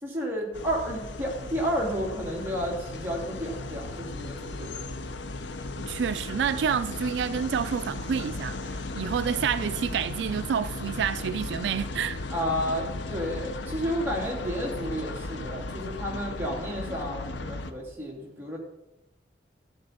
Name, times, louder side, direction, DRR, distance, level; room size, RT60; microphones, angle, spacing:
voice 1, 0.0-4.8 12.3-18.6, equal, 15° right, 2.6 m, -31 dB
sound 1, 0.5-17.7, left 2 dB, 85° left, 0.7 m, -36 dB
voice 2, 5.9-12.2 15.4-15.5, right 7 dB, 75° right, 0.3 m, -29 dB
14.0 x 8.1 x 4.3 m
head